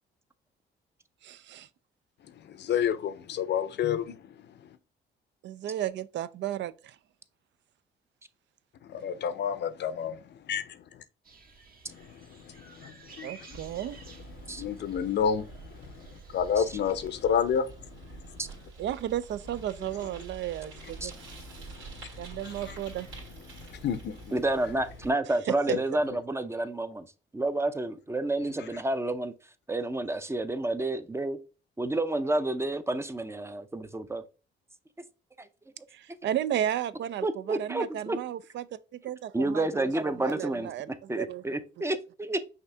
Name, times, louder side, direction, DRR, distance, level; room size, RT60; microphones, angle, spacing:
voice 1, 1.2-1.7 5.4-7.0 13.2-14.0 18.8-21.1 22.2-23.1 35.9-38.7 39.0-41.4, right 11 dB, 65° right, 0.4 m, -34 dB
voice 2, 2.2-4.8 8.8-11.0 11.9-18.5 20.8-22.8 23.1-24.4 25.7-25.8 28.6-28.8, left 8 dB, 60° left, 0.6 m, -32 dB
sound 1, 11.2-17.2, right 4 dB, 50° right, 1.3 m, -53 dB
Bicycle, 13.5-25.1, right 3 dB, 85° right, 2.2 m, -47 dB
voice 3, 24.3-27.1 27.3-29.3 29.7-31.4 31.8-34.2 35.4-35.5 36.1-36.2 37.2-38.2 39.3-42.5, right 2 dB, 15° right, 0.5 m, -30 dB
5.7 x 2.8 x 3.3 m
cardioid pair, 90°, 20 cm